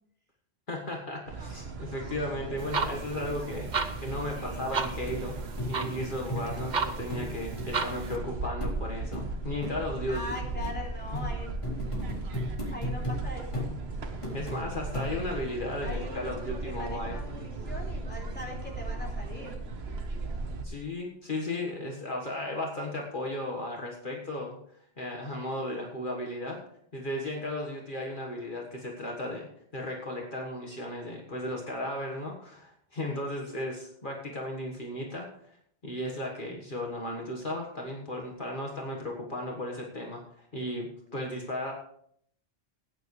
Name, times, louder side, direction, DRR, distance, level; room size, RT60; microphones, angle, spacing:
voice 1, 0.7-5.4 5.7-10.2 11.1-11.2 14.3-17.2 20.6-24.6 25.0-26.6 26.9-29.5 29.7-35.6 35.8-41.7, left 1 dB, 50° left, -1 dB, 1.7 m, -35 dB
sound 1, 1.3-20.6, right 3 dB, 70° right, 1.4 m, -37 dB
sound 2, 2.6-8.2, right 4 dB, 45° right, 0.9 m, -35 dB
sound 3, 4.1-4.2 4.6-4.7 5.1-5.2 5.6-6.7 7.1-7.3 7.6-7.7 8.1-8.2 8.6-8.7 9.1-9.3 9.6-9.8 10.1-10.3 10.6-10.8 11.2-11.3 11.6-13.2 13.5-13.7 14.2-14.6 14.9-15.4 15.9-16.0, left 1 dB, 30° left, 3.8 m, -35 dB
voice 2, 4.3-4.7 5.0-5.1 10.0-11.5 12.0-12.3 12.7-13.7 15.8-19.5, left 2 dB, 10° left, -3 dB, 3.1 m, -41 dB
17.0 x 9.7 x 3.2 m, 0.67 s
omnidirectional pair, 1.1 m